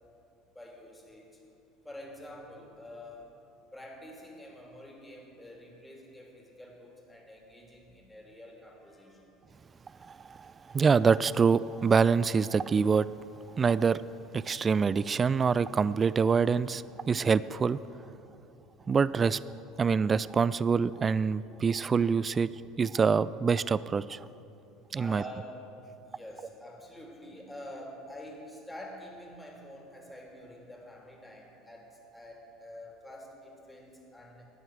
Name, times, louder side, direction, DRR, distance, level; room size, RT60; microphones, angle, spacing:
voice 1, 0.5-1.4 1.8-3.4 3.7-9.3 24.9-25.7 26.0-34.5, left 1 dB, 10° left, -1 dB, 3.2 m, -47 dB
voice 2, 10.0-13.1 13.6-14.0 14.3-17.8 18.9-19.4 19.8-22.5 22.8-24.2 24.9-25.2, right 5 dB, 30° right, 18 dB, 0.3 m, -25 dB
12.5 x 9.3 x 8.0 m, 2.8 s
hypercardioid pair, 70°, 0 cm